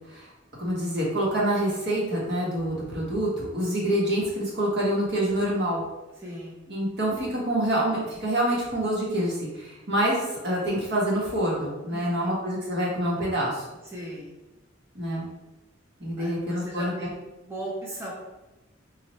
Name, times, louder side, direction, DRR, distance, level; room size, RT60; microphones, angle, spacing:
voice 1, 0.6-5.8 6.7-13.7 14.9-15.3 16.0-16.9, right 1 dB, 60° right, -4 dB, 1.2 m, -26 dB
voice 2, 6.2-6.6 11.9-12.4 13.9-14.3 16.2-17.1 17.4-18.1, right 1 dB, 15° right, -5 dB, 0.6 m, -37 dB
4.1 x 2.4 x 3.1 m, 1.0 s
head